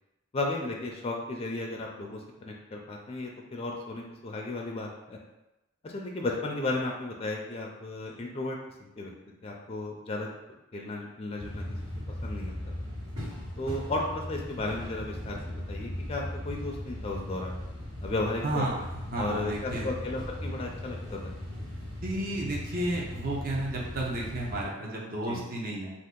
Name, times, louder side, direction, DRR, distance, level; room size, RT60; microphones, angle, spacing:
voice 1, 0.3-5.2 5.8-9.1 9.4-10.3 10.7-11.6 12.2-12.6 13.6-17.6 18.0-18.7 19.2-21.3 25.2-25.4, left 2 dB, 30° left, 0 dB, 0.4 m, -34 dB
sound 1, 11.4-24.7, left 1 dB, 65° right, 1.5 m, -38 dB
voice 2, 18.4-20.0 22.0-25.9, right 1 dB, 45° right, -3 dB, 0.6 m, -32 dB
2.7 x 2.4 x 3.6 m, 0.98 s
head